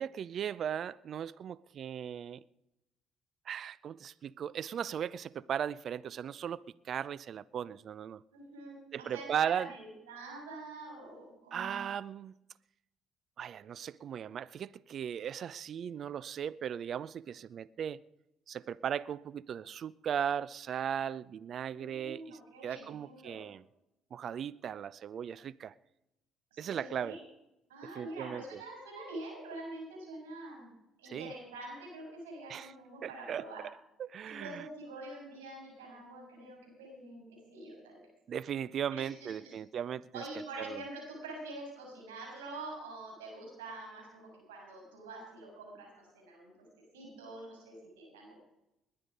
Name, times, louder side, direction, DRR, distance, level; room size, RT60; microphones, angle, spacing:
voice 1, 0.0-2.4 3.5-8.2 8.9-9.7 11.5-12.3 13.4-18.0 18.5-23.6 24.1-25.7 26.6-27.2 28.0-28.4 31.1-31.3 32.5-32.7 33.0-33.4 34.0-34.6 38.3-40.2 40.6-40.8, right 8 dB, 55° right, 0.5 m, -37 dB
voice 2, 8.3-11.9 21.7-23.4 26.5-27.2 27.7-30.7 31.0-33.6 34.2-38.0 38.9-39.6 40.1-48.4, right 2 dB, 90° right, 7.0 m, -46 dB
20.5 x 9.8 x 5.3 m
hypercardioid pair, 60°, 0 cm